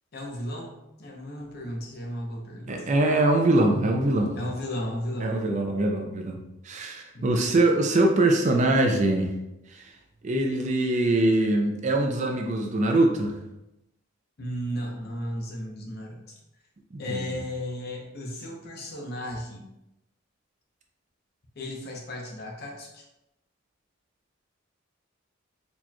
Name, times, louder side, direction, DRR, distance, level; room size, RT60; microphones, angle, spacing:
voice 1, 0.1-2.9 4.4-5.4 7.1-7.6 14.4-16.4 17.0-19.7 21.6-23.1, left 1 dB, 50° left, 0 dB, 0.6 m, -35 dB
voice 2, 2.7-4.4 5.2-6.4 6.6-9.3 9.7-9.9 10.2-13.4 16.9-17.3, right 2 dB, 35° right, 3 dB, 0.4 m, -23 dB
4.2 x 2.9 x 2.2 m, 0.90 s
head